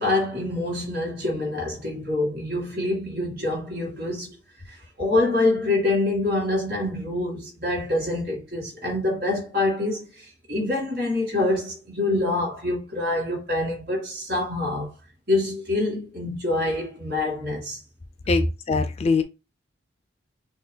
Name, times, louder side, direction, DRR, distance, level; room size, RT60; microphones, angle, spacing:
voice 1, 0.0-4.4 4.7-14.9 15.3-17.8 18.3-18.4, left 2 dB, 50° right, 2.0 m, -26 dB
voice 2, 18.3-19.2, left 4 dB, 35° left, 0.3 m, -23 dB
5.9 x 2.5 x 2.2 m
head